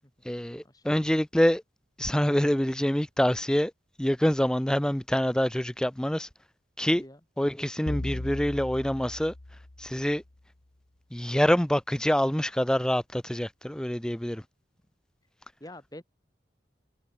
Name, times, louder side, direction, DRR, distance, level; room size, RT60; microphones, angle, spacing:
voice 1, 0.2-1.6 2.0-3.7 4.0-6.3 6.8-7.0 7.4-9.3 9.8-10.2 11.1-14.4, equal, 5° left, 0.5 m, -26 dB
voice 2, 6.8-7.2 15.6-16.0, left 1 dB, 20° left, 5.6 m, -46 dB
sound 1, 7.9-10.3, left 1 dB, 70° left, 1.4 m, -38 dB
head